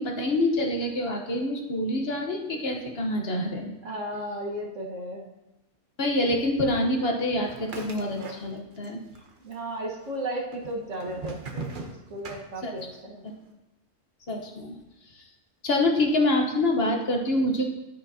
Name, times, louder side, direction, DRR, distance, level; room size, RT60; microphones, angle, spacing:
voice 1, 0.0-3.7 6.0-9.0 12.6-12.7 13.2-13.3 14.3-14.8 15.1-15.3 15.6-17.6, left 1 dB, 55° left, 2 dB, 1.3 m, -26 dB
voice 2, 3.8-5.2 9.4-11.7 12.1-13.2, right 1 dB, 80° right, -2 dB, 1.9 m, -34 dB
sound 1, 7.4-8.9 9.1-9.9 10.5-13.0, right 4 dB, 45° right, 1.0 m, -39 dB
9.9 x 9.1 x 2.8 m, 1.0 s
omnidirectional pair, 1.3 m